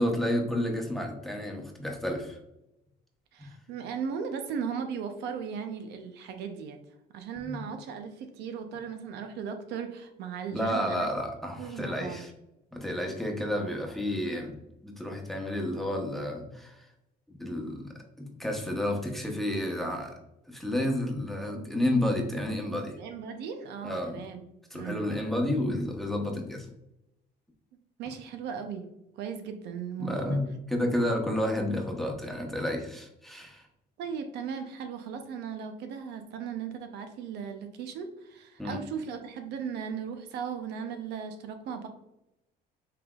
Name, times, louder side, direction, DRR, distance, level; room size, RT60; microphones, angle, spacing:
voice 1, 0.0-2.4 3.4-3.5 7.5-7.6 10.5-12.3 12.7-14.5 14.8-16.8 17.3-17.9 18.2-20.1 20.5-23.0 23.8-24.2 24.7-26.7 30.0-33.6 38.6-38.8, left 1 dB, ahead, 1 dB, 0.9 m, -31 dB
voice 2, 3.3-6.8 7.1-11.1 11.6-12.3 22.9-24.4 24.7-25.1 28.0-28.9 29.1-30.4 34.0-41.9, right 7 dB, 80° right, 7 dB, 0.6 m, -37 dB
5.7 x 3.4 x 2.4 m, 0.88 s
cardioid pair, 110°, 17 cm